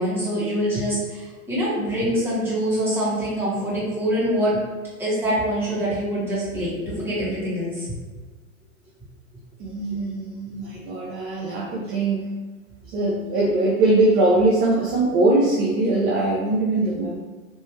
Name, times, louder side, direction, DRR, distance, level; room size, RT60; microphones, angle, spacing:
voice 1, 0.0-4.6 5.0-7.9, equal, 5° right, -10 dB, 1.5 m, -24 dB
voice 2, 9.6-12.3 12.9-17.2, right 2 dB, 30° right, -3 dB, 0.5 m, -21 dB
3.2 x 2.9 x 3.0 m, 1.3 s
hypercardioid pair, 125°, 43 cm